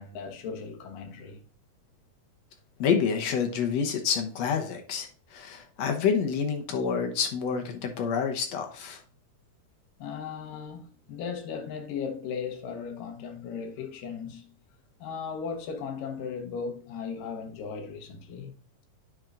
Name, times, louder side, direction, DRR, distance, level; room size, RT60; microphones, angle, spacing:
voice 1, 0.0-1.5 10.0-14.5 15.0-18.6, left 6 dB, 85° left, 2.9 m, -37 dB
voice 2, 2.8-5.1 5.3-9.0, left 6 dB, 65° left, 1.8 m, -28 dB
10.5 x 4.5 x 2.5 m
omnidirectional pair, 3.8 m